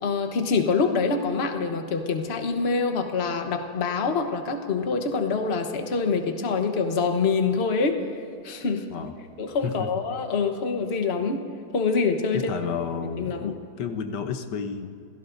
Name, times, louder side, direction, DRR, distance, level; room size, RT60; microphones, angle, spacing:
voice 1, 0.0-8.0 8.4-8.9 9.4-11.4 11.7-12.5 13.2-13.5, left 4 dB, 40° left, 5 dB, 1.2 m, -25 dB
voice 2, 12.3-14.9, left 6 dB, 85° left, 6 dB, 1.5 m, -31 dB
27.5 x 16.5 x 2.6 m, 2.4 s
omnidirectional pair, 1.8 m